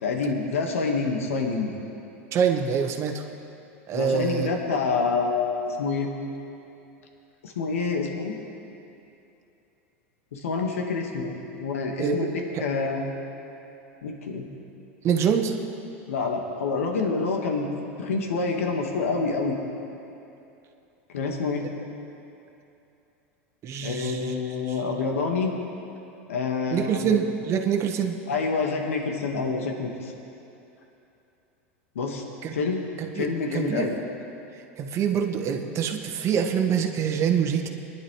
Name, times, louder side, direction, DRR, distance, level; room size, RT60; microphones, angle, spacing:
voice 1, 0.0-1.7 3.9-6.1 7.4-8.3 10.3-12.3 12.6-13.0 14.0-14.5 16.1-17.7 18.0-19.6 21.1-21.7 23.8-25.5 26.3-27.0 28.3-30.1 31.9-32.2 32.5-32.8 33.1-34.0, left 4 dB, 85° left, 2 dB, 1.5 m, -27 dB
voice 2, 2.3-3.3 3.9-4.5 12.0-12.2 12.5-12.7 15.0-15.6 23.6-25.1 26.7-28.2 32.4-32.6 33.0-34.0 34.5-37.7, right 7 dB, 40° right, 4 dB, 1.3 m, -26 dB
22.5 x 11.0 x 3.2 m, 2.8 s
hypercardioid pair, 95°, 7 cm